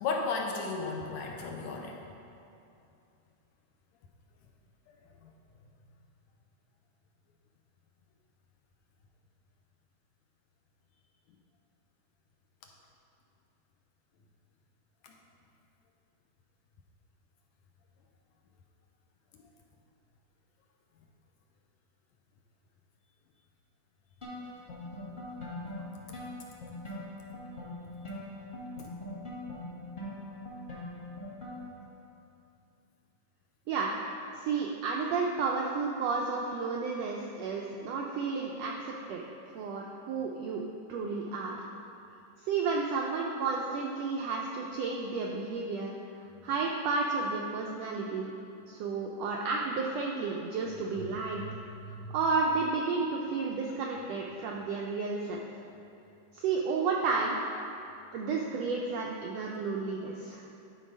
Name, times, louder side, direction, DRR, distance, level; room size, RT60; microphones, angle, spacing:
voice 1, 0.0-2.0 15.0-15.1 51.0-51.1 51.4-51.5 51.8-52.2, left 4 dB, 75° left, 1 dB, 1.7 m, -34 dB
sound 1, 24.2-31.9, left 1 dB, 55° left, 0.5 m, -42 dB
voice 2, 34.3-39.2 39.5-40.6 40.9-41.6 42.4-45.9 46.4-48.3 48.7-51.4 51.9-55.4 56.3-57.4 58.1-60.6, right 4 dB, 85° right, -1 dB, 1.5 m, -32 dB
11.5 x 3.9 x 5.2 m, 2.7 s
omnidirectional pair, 3.6 m